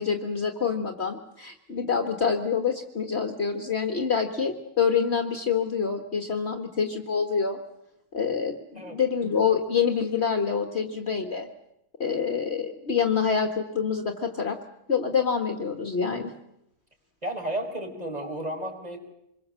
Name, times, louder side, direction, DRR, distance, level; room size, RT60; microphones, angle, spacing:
voice 1, 0.0-7.6 8.1-11.5 12.0-14.6 14.9-16.3, left 6 dB, 45° left, 5 dB, 1.6 m, -26 dB
voice 2, 17.2-19.0, right 1 dB, 25° right, 3 dB, 4.7 m, -32 dB
26.0 x 22.5 x 7.5 m, 0.82 s
omnidirectional pair, 1.6 m